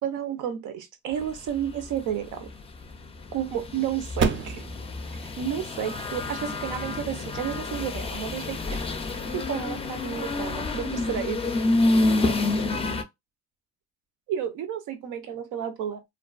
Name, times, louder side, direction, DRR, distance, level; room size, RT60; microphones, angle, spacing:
voice 1, 0.0-2.5 3.3-4.6 5.2-8.8 9.3-11.6 14.3-16.1, right 9 dB, 85° right, 0.7 m, -31 dB
sound 1, 1.1-13.0, left 2 dB, 20° left, 0.4 m, -28 dB
sound 2, 2.9-8.9, right 5 dB, 40° right, 0.4 m, -35 dB
2.4 x 2.2 x 2.3 m
cardioid pair, 90°, 30 cm